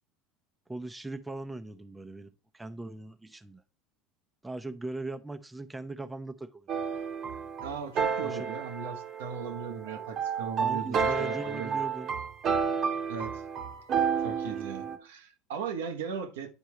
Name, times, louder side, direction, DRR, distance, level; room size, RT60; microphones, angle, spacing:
voice 1, 0.7-3.6 4.4-6.7 8.2-8.5 10.6-12.1, right 2 dB, 10° right, 0.7 m, -39 dB
sound 1, 6.7-15.0, right 6 dB, 50° right, 1.1 m, -31 dB
voice 2, 7.6-11.8 13.1-13.4 14.2-16.5, right 6 dB, 85° right, 1.1 m, -38 dB
10.5 x 4.6 x 3.1 m
hypercardioid pair, 90°, 0 cm